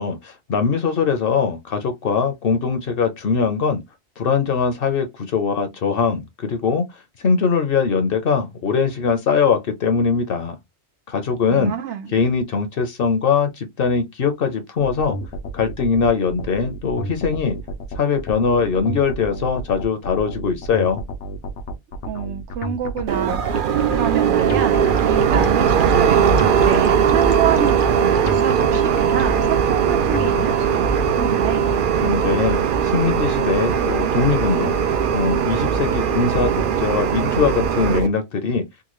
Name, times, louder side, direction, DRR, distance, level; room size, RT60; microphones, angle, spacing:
voice 1, 0.0-3.8 4.2-10.6 11.1-11.7 12.1-15.2 15.5-17.6 17.9-21.0 32.0-34.7 35.1-38.6, left 5 dB, 60° left, 0.8 m, -21 dB
voice 2, 11.5-12.1 22.1-23.4 23.9-24.8 25.0-31.7, right 8 dB, 90° right, 1.0 m, -27 dB
sound 1, 14.8-31.1, equal, 90° left, 1.0 m, -31 dB
sound 2, 23.1-38.1, right 7 dB, 60° right, 0.6 m, -19 dB
3.7 x 2.2 x 3.0 m
omnidirectional pair, 1.2 m